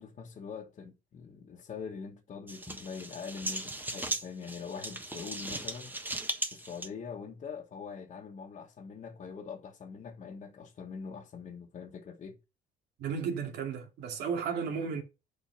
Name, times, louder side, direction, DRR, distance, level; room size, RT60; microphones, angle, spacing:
voice 1, 0.0-6.0 6.5-12.4, left 6 dB, 45° left, 1.4 m, -43 dB
sound 1, 2.5-6.9, right 1 dB, 10° right, 1.3 m, -37 dB
voice 2, 13.0-15.0, right 6 dB, 80° right, 2.4 m, -34 dB
7.4 x 5.5 x 5.6 m
cardioid pair, 110°, 17 cm